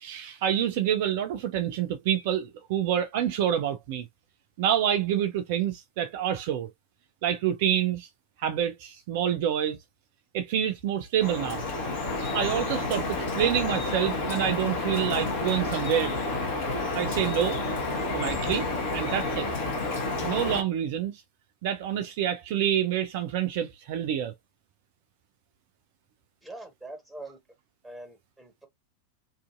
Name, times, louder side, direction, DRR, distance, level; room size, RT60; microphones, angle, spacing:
voice 1, 0.0-4.0 4.6-6.7 7.2-8.1 8.4-9.8 10.3-11.6 12.3-16.1 16.9-17.6 18.1-18.7 18.9-19.5 20.2-21.2 21.6-24.3, right 10 dB, 50° right, 0.4 m, -27 dB
Drip, 11.2-20.6, left 2 dB, 55° left, 1.1 m, -30 dB
voice 2, 26.4-27.4 27.8-28.7, right 2 dB, ahead, 1.3 m, -43 dB
2.7 x 2.5 x 2.4 m
figure-of-eight pair, 90°, 0 cm